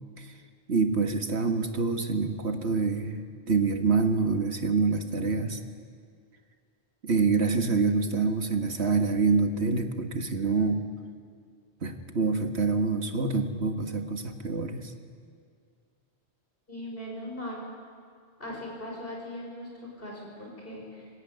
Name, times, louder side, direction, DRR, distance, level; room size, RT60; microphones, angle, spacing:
voice 1, 0.7-5.6 7.0-10.8 11.8-14.9, right 4 dB, 85° right, 5 dB, 2.0 m, -26 dB
voice 2, 16.7-17.6 18.4-21.1, left 1 dB, 60° left, -2 dB, 6.5 m, -39 dB
25.5 x 18.5 x 9.8 m, 2.1 s
omnidirectional pair, 1.1 m